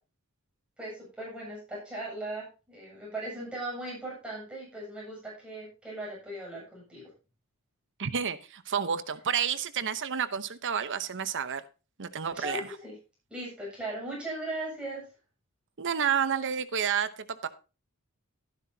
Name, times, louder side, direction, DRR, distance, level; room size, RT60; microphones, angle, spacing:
voice 1, 0.8-7.0 12.3-12.9 13.3-15.0, right 1 dB, 5° right, -5 dB, 7.6 m, -38 dB
voice 2, 8.0-11.6 12.0-12.7 15.8-17.5, right 7 dB, 55° right, 12 dB, 0.9 m, -30 dB
12.5 x 11.5 x 2.8 m, 0.31 s
head